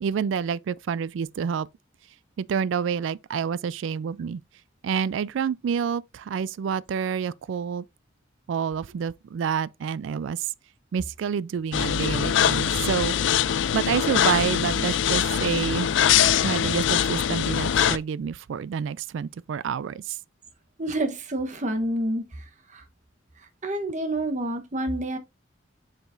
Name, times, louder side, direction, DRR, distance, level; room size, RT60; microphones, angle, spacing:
voice 1, 0.0-1.7 2.4-4.4 4.8-7.8 8.5-10.5 10.9-15.9 16.4-20.2, right 7 dB, 75° right, 0.3 m, -28 dB
sound 1, 11.7-18.0, left 9 dB, 70° left, 0.4 m, -23 dB
voice 2, 20.8-22.2 22.7-22.8 23.6-25.2, right 1 dB, 40° right, 1.1 m, -28 dB
7.1 x 5.7 x 2.5 m
head